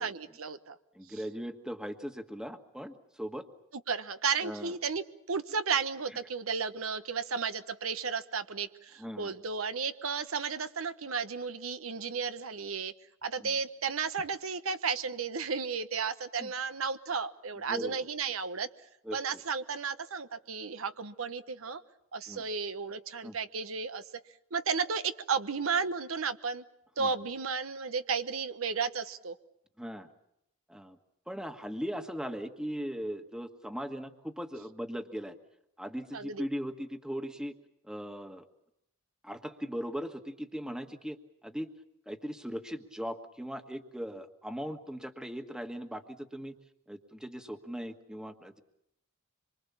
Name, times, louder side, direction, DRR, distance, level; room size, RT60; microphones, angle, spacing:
voice 1, 0.0-0.8 3.9-12.9 13.2-18.7 19.1-21.8 22.1-24.0 24.5-26.6 27.0-29.3 36.1-36.4, right 5 dB, 85° right, 11 dB, 1.1 m, -33 dB
voice 2, 0.9-3.5 4.4-4.7 9.0-9.3 13.4-13.5 16.4-16.5 17.7-18.0 19.0-19.2 22.3-22.4 23.2-23.4 27.0-27.1 29.8-30.1 30.7-31.0 31.3-35.4 35.8-37.5 37.9-38.4 39.2-41.2 41.4-41.7 42.1-46.6 46.9-48.6, equal, 5° right, 6 dB, 1.5 m, -39 dB
26.0 x 24.0 x 7.2 m, 0.80 s
head